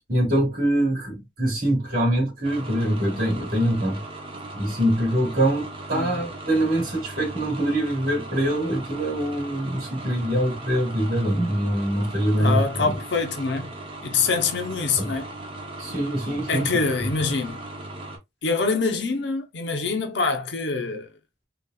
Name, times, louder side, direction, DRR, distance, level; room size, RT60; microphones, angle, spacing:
voice 1, 0.1-4.0 4.5-13.0 15.0-15.1 15.8-16.7, right 1 dB, 45° right, 2.1 m, -24 dB
sound 1, 2.4-18.2, right 2 dB, 25° right, 0.7 m, -38 dB
voice 2, 12.4-13.7 14.0-15.3 16.5-17.6 18.4-21.1, left 4 dB, 60° left, 0.7 m, -25 dB
3.9 x 2.4 x 2.3 m
head